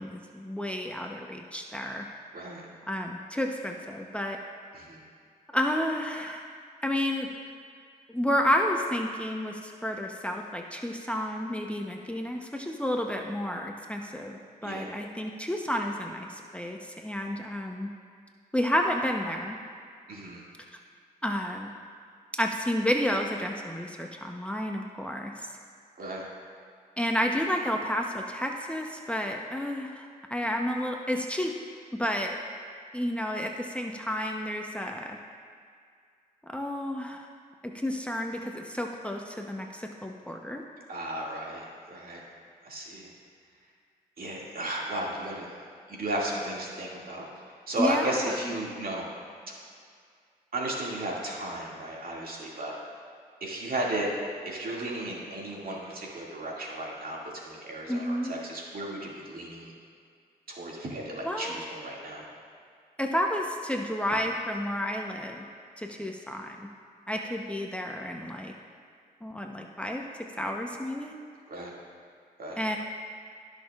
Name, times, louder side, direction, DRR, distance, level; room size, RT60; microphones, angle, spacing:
voice 1, 0.0-2.1 2.9-4.4 5.5-6.4 6.8-7.3 8.1-17.9 18.5-19.6 21.2-21.7 22.4-25.5 27.0-31.5 31.9-32.4 32.9-35.2 36.5-37.3 37.6-40.6 47.8-48.3 57.9-58.4 61.2-61.7 63.0-65.4 65.8-66.7 67.1-68.5 69.2-70.0 70.4-71.1 72.6-72.8, equal, 5° left, 1 dB, 0.9 m, -31 dB
voice 2, 20.1-20.5 26.0-26.3 40.9-42.2 42.6-43.1 44.2-45.5 45.9-47.2 47.7-49.1 50.5-52.7 53.4-54.1 54.4-59.7 60.5-62.3 71.5-71.7 72.4-72.6, right 1 dB, 60° right, -4 dB, 2.3 m, -34 dB
19.0 x 6.4 x 2.5 m, 2.2 s
cardioid pair, 50°, 17 cm